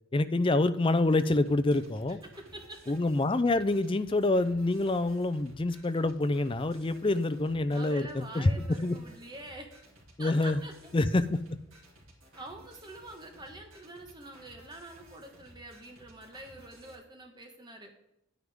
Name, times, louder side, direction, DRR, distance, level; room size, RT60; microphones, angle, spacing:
voice 1, 0.1-2.2 2.9-9.0 10.2-10.6 10.9-11.6, left 2 dB, 25° left, 13 dB, 0.4 m, -27 dB
sound 1, 1.0-17.0, right 1 dB, 70° right, 3.0 m, -56 dB
voice 2, 2.2-2.8 7.7-9.7 10.2-10.9 12.4-17.9, right 1 dB, 20° right, 3 dB, 1.3 m, -46 dB
10.5 x 9.4 x 3.6 m, 0.83 s
head